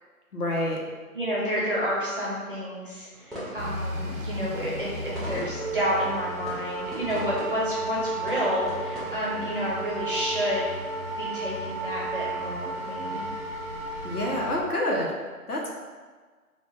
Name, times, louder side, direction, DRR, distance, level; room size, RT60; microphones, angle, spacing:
voice 1, 0.3-0.8 14.0-15.1 15.5-15.7, left 1 dB, 85° left, -2 dB, 1.0 m, -27 dB
voice 2, 1.1-10.7 11.2-13.2, equal, 35° right, -7 dB, 0.8 m, -30 dB
sound 1, 3.1-9.9, equal, ahead, 0.5 m, -41 dB
sound 2, 3.6-14.6, right 2 dB, 65° right, 0.6 m, -33 dB
4.3 x 2.4 x 2.4 m, 1.4 s
figure-of-eight pair, 175°, 45 cm